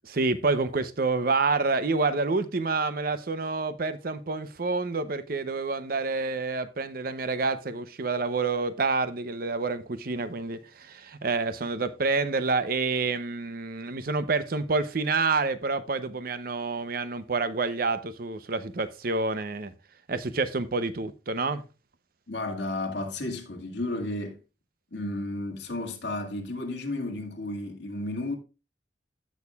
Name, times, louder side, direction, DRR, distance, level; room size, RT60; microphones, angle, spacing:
voice 1, 0.0-19.7 20.1-21.6, right 3 dB, 50° right, 0.7 m, -28 dB
voice 2, 22.3-24.4 24.9-28.4, left 2 dB, 70° left, 2.0 m, -33 dB
15.0 x 6.4 x 2.3 m
head